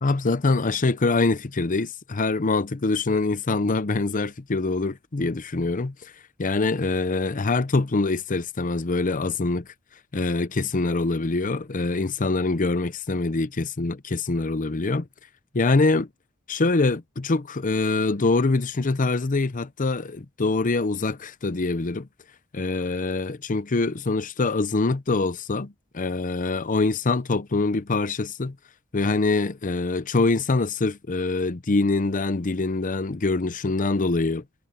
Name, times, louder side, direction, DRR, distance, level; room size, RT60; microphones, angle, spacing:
voice 1, 0.0-6.1 6.4-9.7 10.1-15.1 15.5-16.1 16.5-22.1 22.5-28.6 28.9-34.4, left 3 dB, 40° left, 0.7 m, -24 dB
head